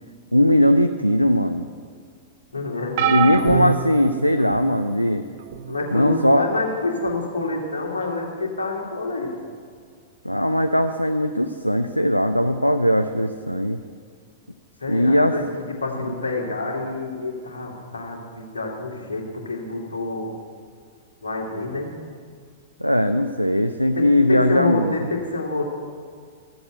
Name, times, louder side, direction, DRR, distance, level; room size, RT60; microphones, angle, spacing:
voice 1, 0.3-1.7 3.1-5.2 5.9-6.5 10.2-13.8 14.9-15.4 22.8-24.9, equal, 90° left, 7 dB, 0.5 m, -19 dB
voice 2, 2.5-3.3 5.7-9.3 14.8-20.3 21.2-21.9 23.9-25.6, left 3 dB, 70° left, -1 dB, 2.5 m, -27 dB
sound 1, 3.0-4.8 5.5-5.8 7.1-7.2, right 7 dB, 50° right, 1.0 m, -24 dB
14.0 x 7.9 x 8.1 m, 2.1 s
figure-of-eight pair, 100°, 0 cm